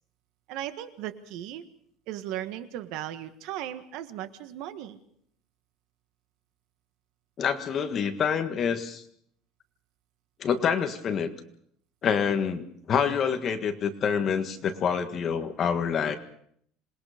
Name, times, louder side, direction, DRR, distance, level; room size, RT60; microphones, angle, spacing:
voice 1, 0.5-1.6 2.1-5.0, right 12 dB, 60° right, 10 dB, 1.6 m, -37 dB
voice 2, 7.4-9.0 10.4-11.3 12.0-16.2, left 7 dB, 30° left, 7 dB, 1.7 m, -27 dB
27.0 x 20.5 x 5.2 m, 0.67 s
cardioid pair, 165°, 0 cm